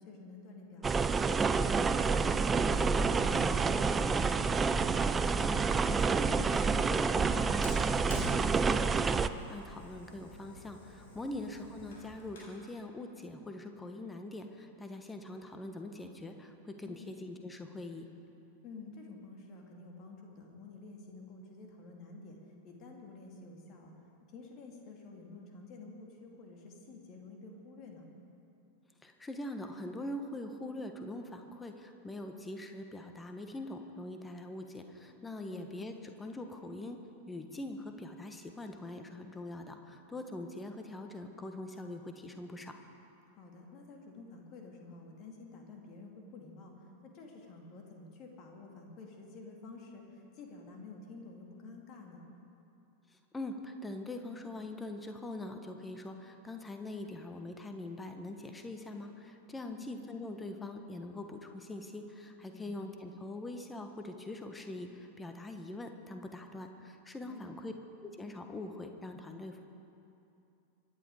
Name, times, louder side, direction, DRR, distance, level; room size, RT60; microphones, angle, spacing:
voice 1, 0.0-1.7 2.1-4.2 11.3-11.5 16.8-17.1 18.6-22.4 22.6-23.9 24.3-28.0 35.4-35.7 43.3-52.2 59.6-59.9 62.5-62.9 67.2-67.5, left 3 dB, 35° left, 1 dB, 2.8 m, -50 dB
sound 1, 0.8-9.3, right 5 dB, 15° right, 0.5 m, -28 dB
voice 2, 5.1-18.1 29.0-37.0 37.3-42.8 53.1-67.7 68.0-69.6, left 2 dB, 10° left, 6 dB, 1.4 m, -43 dB
Fire, 7.6-12.6, left 1 dB, 60° left, 4.5 m, -48 dB
24.5 x 10.5 x 5.0 m, 2.8 s
figure-of-eight pair, 90°, 0 cm